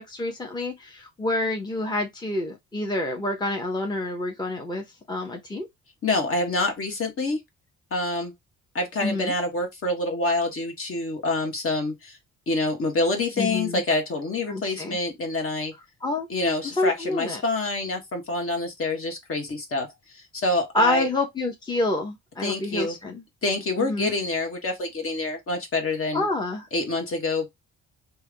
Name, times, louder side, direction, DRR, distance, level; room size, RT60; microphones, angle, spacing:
voice 1, 0.0-5.7 9.0-9.3 13.4-13.8 14.5-15.0 16.0-16.3 16.8-17.4 20.7-23.2 23.8-24.1 26.1-26.7, left 2 dB, 15° left, 0.9 m, -27 dB
voice 2, 6.0-7.4 7.9-8.3 8.7-12.2 12.5-15.7 16.3-21.1 22.4-23.0 23.4-26.3 26.7-27.5, left 2 dB, 45° left, 1.4 m, -27 dB
3.5 x 2.3 x 3.3 m
cardioid pair, 90°, 30 cm